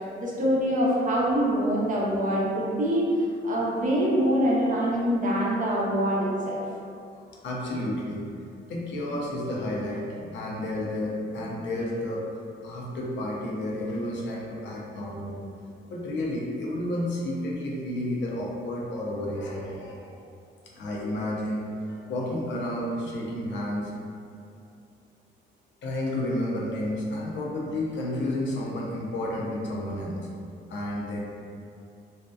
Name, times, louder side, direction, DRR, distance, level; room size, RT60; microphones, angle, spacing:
voice 1, 0.2-3.1 3.4-6.6, equal, 40° right, -5 dB, 0.6 m, -24 dB
voice 2, 7.2-8.3 8.7-15.4 15.9-20.1 20.7-23.9 25.8-30.2 30.7-31.2, left 1 dB, 65° left, -3 dB, 0.6 m, -31 dB
2.6 x 2.2 x 2.2 m, 2.5 s
cardioid pair, 90°, 20 cm